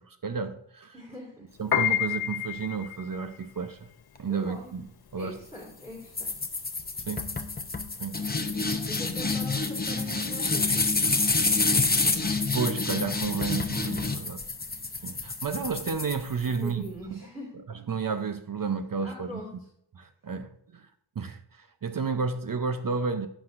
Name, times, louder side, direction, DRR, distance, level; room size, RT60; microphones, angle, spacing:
voice 1, 0.0-0.9 1.6-3.9 4.2-4.8 5.1-5.4 7.1-7.3 8.0-8.2 12.5-14.4 15.0-16.8 17.1-17.3 17.9-19.4 20.0-20.9 21.2-23.3, right 5 dB, 45° right, 8 dB, 0.7 m, -31 dB
voice 2, 0.9-1.5 4.3-4.8 5.2-6.3 8.9-10.9 16.4-17.5 19.0-19.5, left 1 dB, 5° right, -3 dB, 2.4 m, -42 dB
Piano, 1.6-12.0, left 10 dB, 55° left, 0.7 m, -33 dB
sound 1, 6.1-16.7, left 3 dB, 20° left, 0.7 m, -28 dB
15.5 x 6.2 x 2.5 m, 0.70 s
wide cardioid pair, 135°, 46 cm